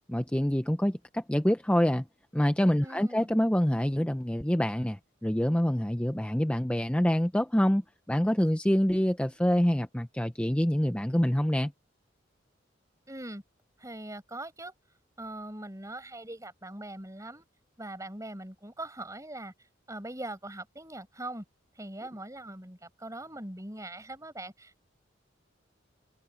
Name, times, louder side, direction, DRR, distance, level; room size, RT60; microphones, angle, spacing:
voice 1, 0.1-2.1 2.3-7.8 8.1-11.7, equal, 5° left, 0.6 m, -26 dB
voice 2, 2.8-3.3 13.1-13.4 13.8-14.7 15.2-17.5 17.8-19.5 19.9-21.4 21.8-24.8, right 1 dB, 15° right, 6.5 m, -41 dB
head